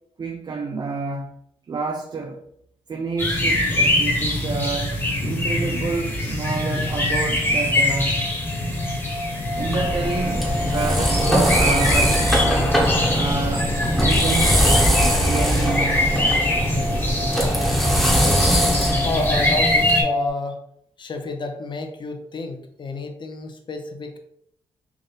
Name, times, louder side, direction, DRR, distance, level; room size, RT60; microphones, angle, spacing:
voice 1, 0.2-1.3 1.7-2.4 2.9-8.2 9.6-12.8 13.1-14.6 15.1-16.3, right 4 dB, 40° right, 0.5 m, -29 dB
sound 1, 3.2-20.0, left 1 dB, 20° left, 1.4 m, -23 dB
sound 2, 7.2-20.3, left 2 dB, 75° right, 1.3 m, -31 dB
sound 3, 9.6-19.9, equal, ahead, 1.2 m, -21 dB
voice 2, 19.0-20.6 21.0-24.2, left 2 dB, 45° left, 0.8 m, -30 dB
3.5 x 2.5 x 3.8 m
supercardioid pair, 60°, 11 cm